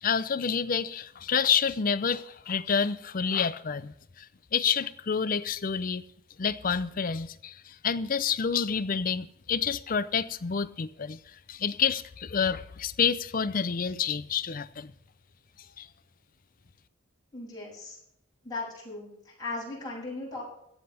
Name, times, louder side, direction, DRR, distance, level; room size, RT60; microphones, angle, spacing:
voice 1, 0.0-6.0 6.4-11.2 11.5-14.9 15.8-15.9, left 6 dB, 40° left, 14 dB, 0.5 m, -28 dB
voice 2, 17.3-18.0 18.4-20.4, left 3 dB, 20° left, -5 dB, 6.9 m, -37 dB
17.5 x 13.0 x 3.4 m, 0.76 s
head